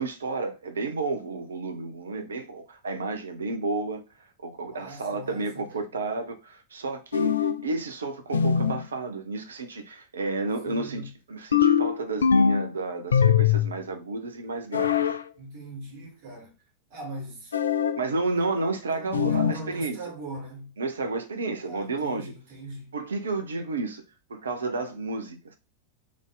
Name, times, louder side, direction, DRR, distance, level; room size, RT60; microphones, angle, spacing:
voice 1, 0.0-4.0 4.4-11.0 11.3-15.0 18.0-20.0 20.8-22.3 22.9-24.0 24.3-25.6, right 3 dB, 70° right, 0.8 m, -31 dB
voice 2, 4.6-5.8 10.6-11.1 15.4-16.6 16.9-17.6 18.9-20.7 21.6-23.0, right 2 dB, 50° right, 2.3 m, -40 dB
sound 1, 7.1-7.7 8.3-8.8 11.5-12.7 13.1-13.8 14.7-15.2 17.5-18.0 19.1-19.6, left 7 dB, 70° left, 0.4 m, -22 dB
3.7 x 3.6 x 3.7 m
figure-of-eight pair, 90°, 0 cm